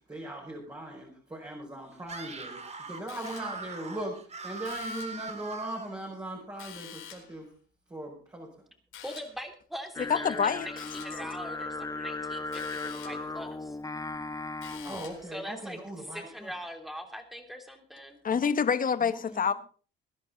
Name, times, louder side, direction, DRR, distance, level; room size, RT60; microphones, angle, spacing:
voice 1, 0.1-2.6 2.9-4.2 4.4-7.5 7.9-8.5 14.8-16.5 19.1-19.4, right 1 dB, 20° right, 5.7 m, -39 dB
Screaming, 2.0-6.0, right 4 dB, 35° right, 2.5 m, -41 dB
sound 1, 3.1-3.7 4.6-5.3 6.6-7.4 8.9-9.5 10.8-11.3 12.5-13.3 14.6-15.3, left 9 dB, 90° left, 4.3 m, -47 dB
voice 2, 9.0-13.8 15.3-18.2, equal, ahead, 3.3 m, -42 dB
Singing, 10.0-15.1, left 3 dB, 20° left, 1.2 m, -37 dB
voice 3, 10.1-10.7 18.2-19.5, left 6 dB, 45° left, 1.3 m, -26 dB
21.0 x 11.0 x 4.0 m
cardioid pair, 90°, 20 cm